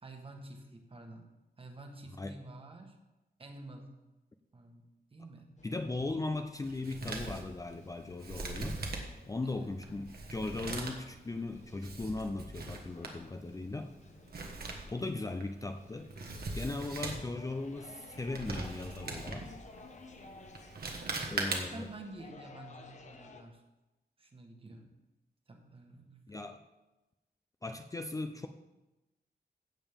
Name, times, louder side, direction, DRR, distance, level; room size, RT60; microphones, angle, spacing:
voice 1, 0.0-3.0 3.4-4.0 4.5-5.6 9.4-9.7 20.9-23.6 24.2-24.9 25.5-26.3, right 2 dB, 35° right, 4 dB, 1.3 m, -50 dB
sound 1, 5.6-23.4, left 3 dB, 45° left, 1.0 m, -56 dB
voice 2, 5.6-8.8 9.3-13.9 14.9-16.1 16.5-19.5 21.3-21.9 26.3-26.6 27.6-28.5, left 2 dB, 20° left, 7 dB, 0.4 m, -38 dB
Male speech man speaking, 6.6-22.0, right 3 dB, 65° right, 1.4 m, -42 dB
16.0 x 7.2 x 3.6 m, 1.0 s
wide cardioid pair, 180°, 17 cm